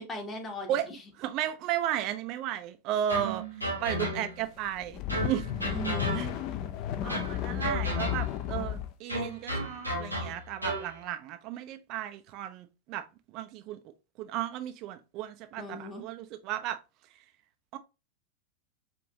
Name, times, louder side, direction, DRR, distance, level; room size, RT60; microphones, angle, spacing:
voice 1, 0.0-1.0 5.6-6.3 15.6-16.0, equal, 20° left, 1.0 m, -38 dB
voice 2, 1.2-5.5 6.1-6.3 7.0-13.0 13.3-13.8 14.2-16.8 17.7-17.8, right 11 dB, 40° right, 0.3 m, -34 dB
sound 1, 3.1-4.5 5.1-6.6 7.1-8.5 9.1-10.9, equal, 90° left, 0.9 m, -34 dB
sound 2, 4.7-8.9, left 11 dB, 40° left, 0.4 m, -33 dB
4.8 x 2.5 x 2.7 m
figure-of-eight pair, 90°, 0 cm